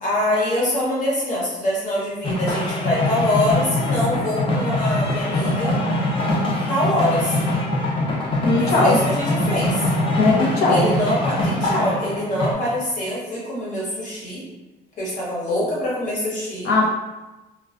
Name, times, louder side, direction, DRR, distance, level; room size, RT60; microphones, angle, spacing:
voice 1, 0.0-5.8 6.7-7.4 8.6-9.9 10.7-14.4 15.0-16.7, left 1 dB, 50° left, -6 dB, 1.2 m, -24 dB
sound 1, 2.2-12.5, left 1 dB, 30° left, 0.5 m, -23 dB
voice 2, 8.4-9.0 10.2-10.9 16.6-16.9, left 3 dB, 70° left, -2 dB, 0.7 m, -18 dB
2.2 x 2.2 x 2.5 m, 1.1 s
cardioid pair, 110°, 17 cm